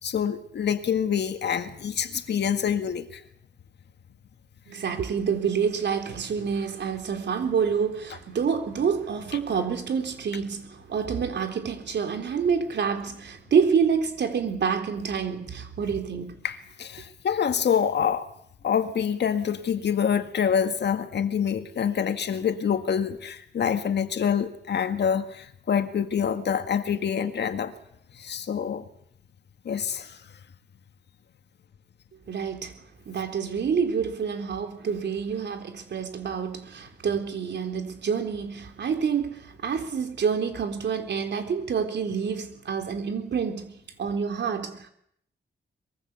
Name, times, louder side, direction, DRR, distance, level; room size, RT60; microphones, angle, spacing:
voice 1, 0.0-3.2 16.4-18.3 18.6-27.7 28.1-28.9 29.7-30.2, left 7 dB, 70° left, 1.9 m, -26 dB
voice 2, 4.7-16.3 32.3-32.8 33.1-43.7 44.0-44.9, right 6 dB, 70° right, 3.8 m, -27 dB
24.0 x 22.5 x 7.2 m
wide cardioid pair, 175°, 19 cm